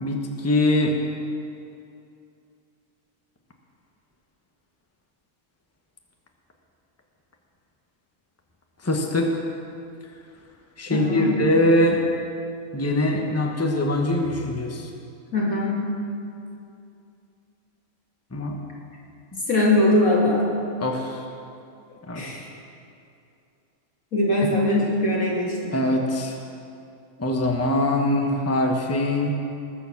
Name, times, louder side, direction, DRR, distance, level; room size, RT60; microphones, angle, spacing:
voice 1, 0.0-1.0 8.8-9.3 10.8-12.0 12.7-14.9 18.3-18.6 19.3-19.4 20.8-21.2 22.1-22.2 25.7-26.4 27.2-29.3, left 1 dB, 10° left, 2 dB, 1.1 m, -22 dB
voice 2, 10.9-11.3 15.3-15.8 19.5-20.4 22.1-22.5 24.1-25.7, left 1 dB, 90° left, -5 dB, 3.3 m, -21 dB
19.5 x 7.0 x 7.2 m, 2.5 s
omnidirectional pair, 1.4 m